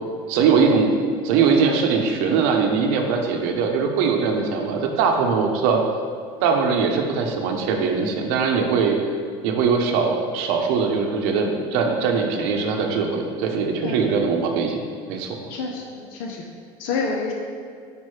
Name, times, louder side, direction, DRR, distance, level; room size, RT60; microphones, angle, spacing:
voice 1, 0.3-0.9 1.2-5.8 6.4-9.0 9.4-14.8 15.1-15.4, right 5 dB, 65° right, 2 dB, 0.8 m, -21 dB
voice 2, 15.5-16.4 16.8-17.3, left 4 dB, 65° left, 1 dB, 0.7 m, -28 dB
5.2 x 4.6 x 4.7 m, 2.2 s
cardioid pair, 180°, 12 cm